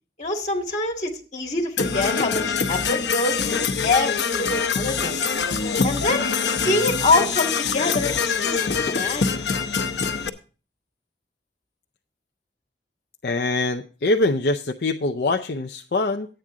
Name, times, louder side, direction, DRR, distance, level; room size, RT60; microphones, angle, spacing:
voice 1, 0.2-5.2 5.8-9.6, left 2 dB, 40° left, 1 dB, 1.9 m, -25 dB
Percussion / Brass instrument, 1.8-10.3, left 5 dB, 85° left, 0.9 m, -24 dB
voice 2, 13.2-16.3, left 2 dB, 65° left, 4 dB, 0.5 m, -23 dB
12.0 x 8.9 x 3.7 m, 0.38 s
head